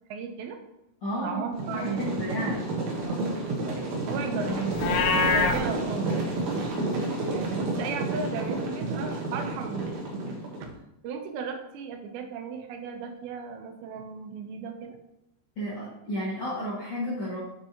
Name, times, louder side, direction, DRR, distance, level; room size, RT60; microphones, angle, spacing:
voice 1, 0.1-0.6 1.2-2.2 3.7-4.8 5.1-6.7 7.3-10.7 11.0-15.0, right 6 dB, 85° right, 5 dB, 3.0 m, -36 dB
voice 2, 1.0-1.4 1.7-2.7 3.0-3.3 15.5-17.4, equal, 50° left, -9 dB, 1.7 m, -32 dB
sound 1, 1.6-10.7, right 2 dB, 65° right, 1.9 m, -30 dB
Livestock farm animals working animals, 4.7-5.6, left 4 dB, 80° left, 2.6 m, -23 dB
7.0 x 6.8 x 2.9 m, 0.86 s
omnidirectional pair, 4.9 m